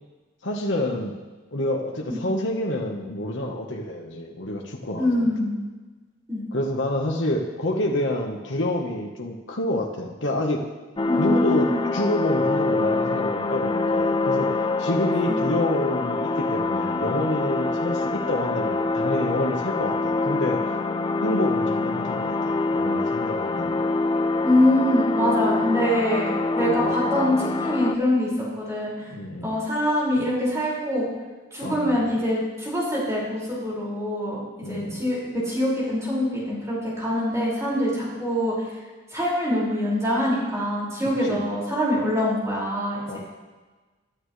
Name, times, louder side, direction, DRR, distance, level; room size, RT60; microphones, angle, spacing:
voice 1, 0.4-1.2 1.5-5.3 6.5-10.6 11.2-14.5 14.8-20.7 21.2-23.7 26.6-26.9 29.1-29.5 31.6-32.0 34.6-35.0 41.3-41.4 43.1-43.2, left 1 dB, 65° left, 0 dB, 1.4 m, -28 dB
voice 2, 5.0-5.6 6.3-6.4 11.1-11.8 15.3-15.4 24.4-28.3 28.6-29.1 29.4-31.1 31.5-34.4 34.7-38.5 39.1-43.2, left 1 dB, 15° right, -6 dB, 5.7 m, -24 dB
sound 1, 11.0-28.0, left 3 dB, 25° left, 0.6 m, -25 dB
22.5 x 11.5 x 3.3 m, 1.3 s
head